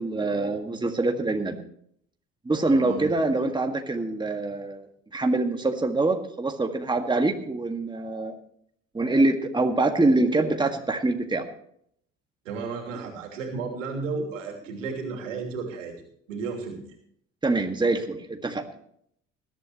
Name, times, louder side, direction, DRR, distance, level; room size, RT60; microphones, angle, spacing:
voice 1, 0.0-1.6 2.4-4.9 5.1-8.3 8.9-11.5 12.9-13.1 17.4-18.6, right 2 dB, 10° right, 5 dB, 1.8 m, -25 dB
voice 2, 2.6-3.1 12.4-15.9 16.3-16.9, right 4 dB, 80° right, 2 dB, 3.0 m, -33 dB
21.0 x 11.5 x 3.0 m, 0.66 s
hypercardioid pair, 60°, 37 cm